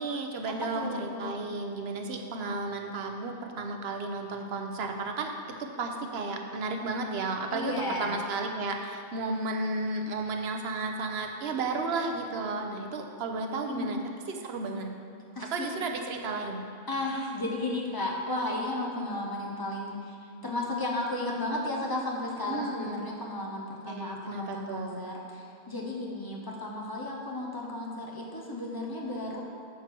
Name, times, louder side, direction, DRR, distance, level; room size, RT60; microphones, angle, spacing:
voice 1, 0.0-5.3 5.6-14.0 14.3-14.9 15.5-16.6 22.4-23.0 23.9-25.1, right 3 dB, 75° right, 3 dB, 0.9 m, -33 dB
voice 2, 0.7-1.4 7.5-8.2 12.7-13.2 13.7-13.9 15.4-15.7 16.9-20.1 20.4-29.4, left 2 dB, 20° left, -2 dB, 0.9 m, -34 dB
7.2 x 4.5 x 5.9 m, 2.4 s
omnidirectional pair, 1.1 m